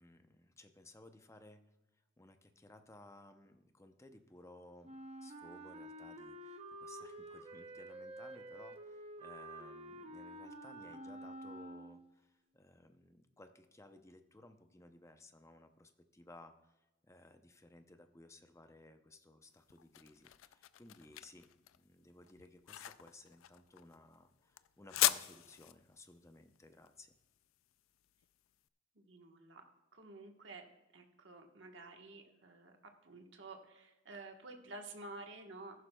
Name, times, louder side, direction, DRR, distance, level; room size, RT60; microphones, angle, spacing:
voice 1, 0.0-1.6 2.2-27.1, left 2 dB, 15° left, 7 dB, 0.6 m, -59 dB
Wind instrument woodwind instrument, 4.8-12.2, right 1 dB, 30° right, 0.8 m, -49 dB
sound 1, 19.4-28.5, left 14 dB, 85° left, 0.4 m, -40 dB
voice 2, 28.9-29.6 29.9-30.7 30.9-32.7 33.0-35.7, right 2 dB, 65° right, 4 dB, 1.2 m, -51 dB
14.5 x 11.5 x 2.3 m, 1.0 s
head